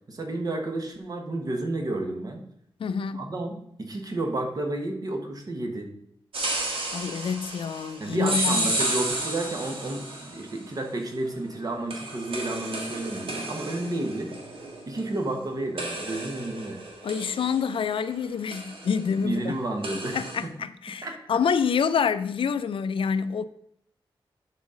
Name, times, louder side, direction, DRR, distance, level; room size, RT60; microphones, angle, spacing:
voice 1, 0.1-2.5 3.1-5.9 8.0-14.3 14.9-16.8 19.2-20.5 21.0-21.2, right 2 dB, 40° right, 1.3 m, -31 dB
voice 2, 2.8-3.3 6.9-8.7 17.0-19.5 19.9-23.4, left 6 dB, 70° left, 0.4 m, -27 dB
sound 1, 6.3-10.6 11.9-15.4 15.8-18.1 18.5-19.0 19.8-20.4, right 1 dB, 75° right, 1.6 m, -32 dB
11.0 x 4.2 x 3.8 m
wide cardioid pair, 145°, 9 cm